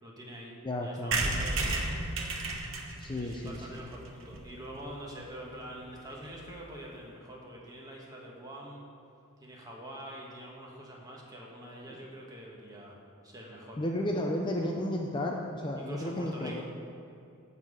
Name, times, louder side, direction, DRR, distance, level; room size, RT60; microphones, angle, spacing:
voice 1, 0.0-0.5 0.8-1.9 3.1-8.8 9.4-13.0 13.2-13.8 15.7-16.6, right 1 dB, 20° right, -3 dB, 1.4 m, -45 dB
voice 2, 0.6-1.3 3.0-3.8 11.9-12.0 13.8-16.6, left 1 dB, 25° left, 1 dB, 0.5 m, -33 dB
sound 1, 1.1-4.8 5.2-5.3 5.5-5.6 5.8-5.9 6.1-6.4, right 2 dB, 65° right, 1.0 m, -33 dB
10.0 x 4.1 x 7.5 m, 2.5 s
head